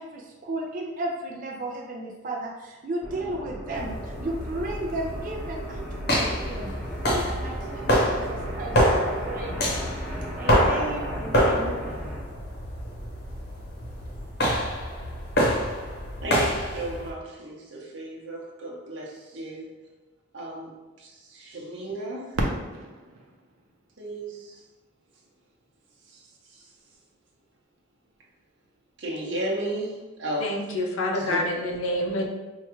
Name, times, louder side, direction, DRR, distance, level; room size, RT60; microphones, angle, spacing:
voice 1, 0.0-6.7 7.0-9.8 10.4-11.9, right 1 dB, 40° right, -1 dB, 0.4 m, -34 dB
sound 1, 3.0-12.2, equal, 5° left, 0.9 m, -37 dB
sound 2, 3.7-17.1, equal, 50° left, 0.8 m, -27 dB
voice 2, 16.2-19.7 20.3-20.7 21.0-22.3 24.0-24.4 29.0-29.9 30.2-30.5 31.2-31.4, right 1 dB, 65° right, -3 dB, 0.8 m, -33 dB
Fireworks, 22.3-25.1 25.8-25.9 26.6-27.0 28.9-29.0, right 1 dB, 90° right, 0.6 m, -34 dB
voice 3, 30.4-32.3, left 1 dB, 85° left, 2 dB, 0.5 m, -27 dB
4.5 x 2.3 x 3.0 m, 1.2 s
head